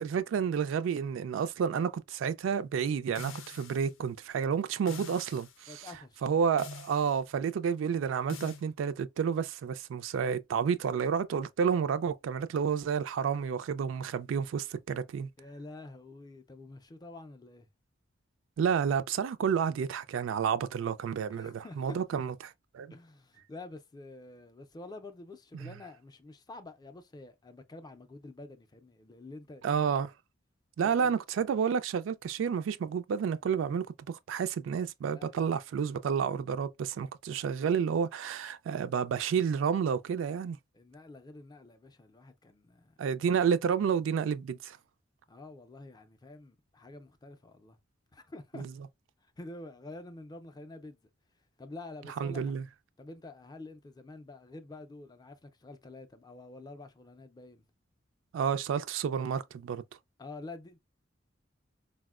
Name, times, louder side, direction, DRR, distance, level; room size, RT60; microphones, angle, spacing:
voice 1, 0.0-5.7 6.2-15.3 18.6-22.3 22.7-22.9 25.6-25.7 29.6-30.1 30.8-40.6 43.0-44.8 48.5-48.7 52.2-52.6 58.3-59.8, right 7 dB, 75° right, 0.3 m, -30 dB
sound 1, 3.2-3.9 4.9-5.6 6.6-7.2 8.3-8.6, left 4 dB, 85° left, 0.5 m, -45 dB
voice 2, 5.7-6.2 15.4-17.7 21.3-22.2 22.9-29.8 30.8-31.1 35.0-35.3 40.7-43.0 45.3-47.8 48.1-48.6 49.2-51.1 51.6-52.5 53.0-57.6 60.2-60.8, left 2 dB, 20° left, 0.4 m, -48 dB
4.1 x 2.1 x 2.3 m
head